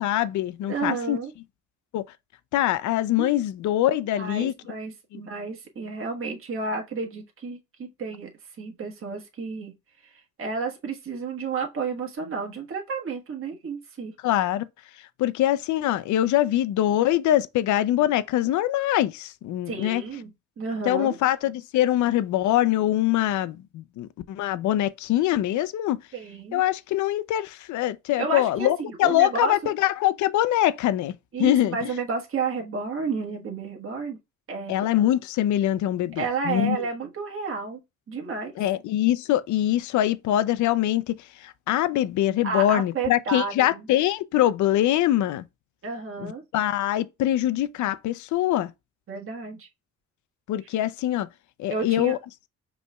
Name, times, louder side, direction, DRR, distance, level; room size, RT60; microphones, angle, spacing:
voice 1, 0.0-1.2 1.9-2.0 2.5-4.5 5.1-5.2 14.2-14.7 15.2-20.0 20.8-26.0 26.5-31.1 31.4-31.9 34.7-36.8 38.6-41.1 41.4-45.4 46.2-48.7 50.5-51.3 51.6-52.2, left 13 dB, 75° left, 0.5 m, -23 dB
voice 2, 0.7-1.3 3.2-3.3 4.2-8.3 8.6-9.7 10.0-14.1 19.7-20.3 20.6-21.2 26.1-26.6 28.2-29.6 31.3-34.2 34.5-34.9 36.1-37.8 38.1-38.5 42.4-43.9 45.8-46.4 49.1-49.7 51.7-52.1, right 4 dB, 45° right, 1.4 m, -31 dB
5.3 x 3.2 x 2.3 m
cardioid pair, 90°, 30 cm